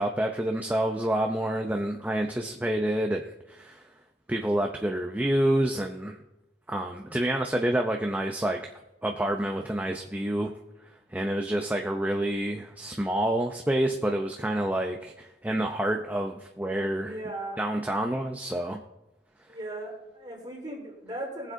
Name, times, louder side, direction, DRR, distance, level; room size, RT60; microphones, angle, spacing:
voice 1, 0.0-3.8 4.3-6.2 6.7-8.7 9.0-10.5 11.1-17.1 17.6-18.8, right 1 dB, 10° right, 2 dB, 0.6 m, -28 dB
voice 2, 17.0-17.6 19.5-21.5, right 1 dB, 25° right, -2 dB, 3.5 m, -37 dB
21.0 x 7.5 x 2.7 m, 0.94 s
head